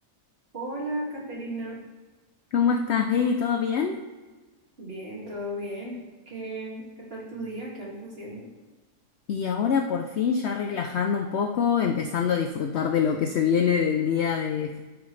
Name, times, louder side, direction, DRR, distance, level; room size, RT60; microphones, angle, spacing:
voice 1, 0.5-1.8 4.8-6.0 6.3-8.5, right 1 dB, 40° right, -5 dB, 2.3 m, -35 dB
voice 2, 2.5-4.0 9.3-14.8, left 7 dB, 65° left, 5 dB, 0.6 m, -25 dB
12.0 x 4.9 x 3.2 m, 1.3 s
omnidirectional pair, 1.7 m